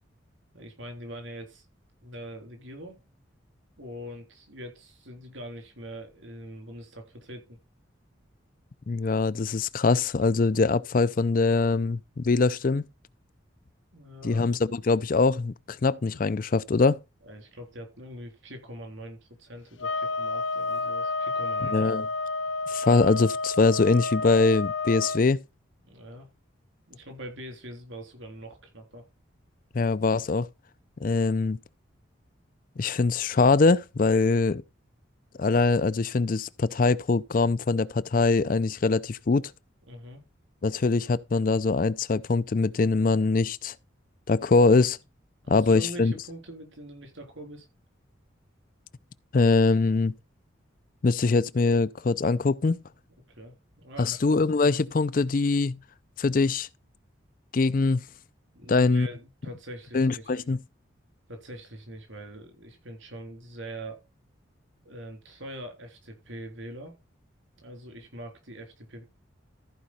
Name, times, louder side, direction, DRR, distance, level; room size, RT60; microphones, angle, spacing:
voice 1, 0.5-1.7 2.0-3.0 3.8-7.6 13.9-14.5 17.2-21.9 25.8-26.3 26.9-29.1 39.9-40.2 45.4-47.7 53.3-54.2 58.5-60.4 61.3-64.0 64.8-66.9 67.6-69.1, right 1 dB, 75° right, 3.4 m, -43 dB
voice 2, 8.9-12.8 14.2-17.0 21.7-22.1 22.7-25.4 29.7-30.5 31.0-31.6 32.8-34.6 35.4-39.5 40.6-43.7 44.3-45.0 45.5-46.1 49.3-50.1 51.0-52.8 54.0-55.8 56.2-56.7 57.5-58.0 58.7-59.1 59.9-60.6, left 3 dB, 45° left, 0.4 m, -23 dB
sound 1, 19.8-25.2, left 3 dB, 75° left, 0.8 m, -30 dB
14.0 x 5.1 x 4.3 m
head